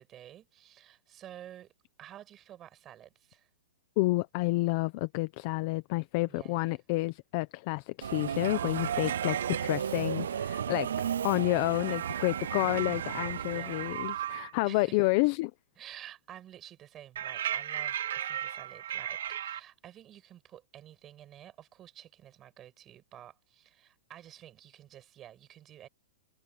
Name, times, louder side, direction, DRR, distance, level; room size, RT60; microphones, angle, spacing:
voice 1, 0.0-1.7 2.0-3.5 6.3-6.7 13.4-13.8 14.6-15.1 15.8-25.9, right 11 dB, 20° right, 7.2 m, -51 dB
voice 2, 4.0-10.9 11.2-15.5, left 22 dB, 35° left, 0.8 m, -29 dB
Subway metro underground, 8.0-14.2, right 8 dB, 80° right, 0.5 m, -35 dB
sound 1, 8.2-9.8 11.7-14.5 17.1-19.6, right 11 dB, 60° right, 1.1 m, -36 dB
hypercardioid pair, 165°, 0 cm